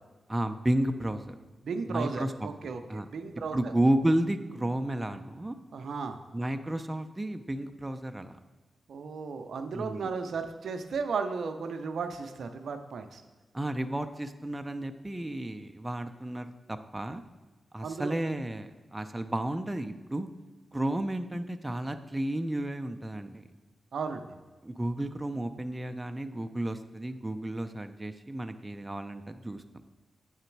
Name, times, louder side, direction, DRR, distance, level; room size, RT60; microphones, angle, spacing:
voice 1, 0.3-1.3 1.9-2.5 2.9-3.1 3.5-5.6 6.3-8.4 9.7-10.1 13.5-17.2 17.7-20.3 20.7-23.5 24.6-29.6, right 1 dB, 15° right, 7 dB, 0.4 m, -32 dB
voice 2, 1.6-3.6 5.7-6.2 8.9-13.2 17.8-18.2 23.9-24.3, right 5 dB, 75° right, 7 dB, 0.5 m, -35 dB
8.1 x 3.8 x 4.6 m, 1.3 s
cardioid pair, 50°, 0 cm